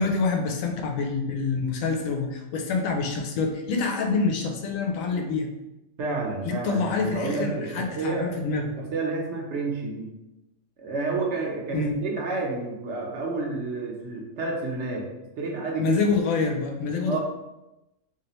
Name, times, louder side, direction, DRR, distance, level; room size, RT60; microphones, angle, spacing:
voice 1, 0.0-5.5 6.4-8.7 11.7-11.9 15.8-17.2, left 4 dB, 85° left, 3 dB, 1.0 m, -26 dB
voice 2, 6.0-8.3 8.9-10.1 10.8-15.1 15.4-16.0 17.1-17.2, right 3 dB, 65° right, -1 dB, 0.9 m, -30 dB
3.1 x 2.7 x 2.9 m, 0.96 s
omnidirectional pair, 1.4 m